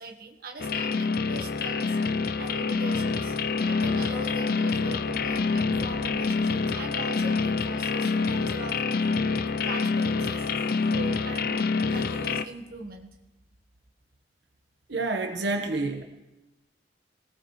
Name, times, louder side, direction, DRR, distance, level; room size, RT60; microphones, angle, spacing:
voice 1, 0.0-2.0 2.4-3.3 3.7-8.8 9.6-11.6 11.9-13.2, right 2 dB, 55° right, 2 dB, 1.6 m, -40 dB
sound 1, 0.6-12.4, left 4 dB, 55° left, 0.5 m, -26 dB
sound 2, 5.5-7.3, left 1 dB, 80° left, 2.9 m, -44 dB
voice 2, 14.9-16.0, right 3 dB, 80° right, 4 dB, 1.4 m, -28 dB
24.0 x 18.5 x 3.3 m, 1.0 s
head